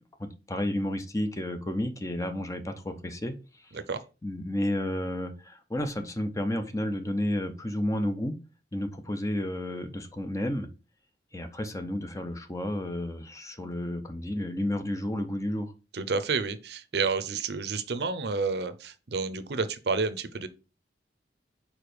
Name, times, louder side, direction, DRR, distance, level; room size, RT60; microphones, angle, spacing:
voice 1, 0.2-3.7 4.2-8.4 8.7-10.7 11.3-15.7, left 1 dB, 20° left, 0.7 m, -31 dB
voice 2, 15.9-20.5, right 4 dB, 65° right, 0.6 m, -30 dB
4.8 x 4.4 x 5.0 m
head